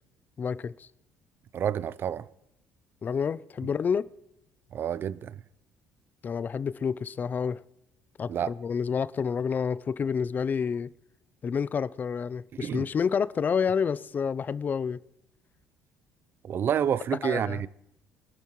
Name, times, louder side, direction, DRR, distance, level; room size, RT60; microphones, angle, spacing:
voice 1, 0.4-0.9 3.0-4.0 6.2-7.6 8.2-10.9 11.4-15.0 17.2-17.6, left 6 dB, 35° left, 0.5 m, -29 dB
voice 2, 1.5-2.3 4.7-5.3 8.3-8.5 12.6-12.9 16.4-17.7, right 9 dB, 45° right, 0.5 m, -28 dB
23.0 x 11.5 x 3.1 m
cardioid pair, 105°, 5 cm